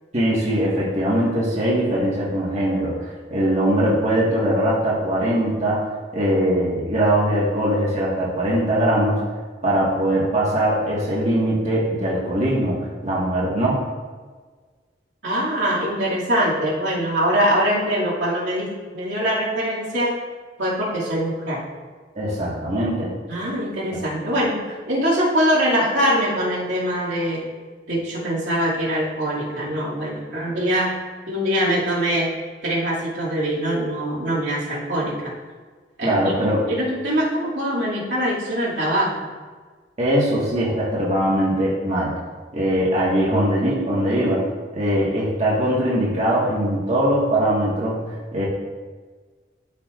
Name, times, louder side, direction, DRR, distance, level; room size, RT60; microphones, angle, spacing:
voice 1, 0.1-5.9 6.1-9.2 9.6-12.8 13.0-13.8 22.1-23.1 23.9-24.0 36.0-36.6 40.0-42.1 42.5-44.4 44.7-48.4, right 1 dB, 40° right, -7 dB, 1.7 m, -21 dB
voice 2, 15.2-20.2 20.6-21.6 23.3-27.5 27.9-30.9 31.3-32.4 32.6-35.3 36.0-39.3, equal, 85° right, -7 dB, 2.4 m, -23 dB
12.0 x 5.6 x 2.5 m, 1.5 s
head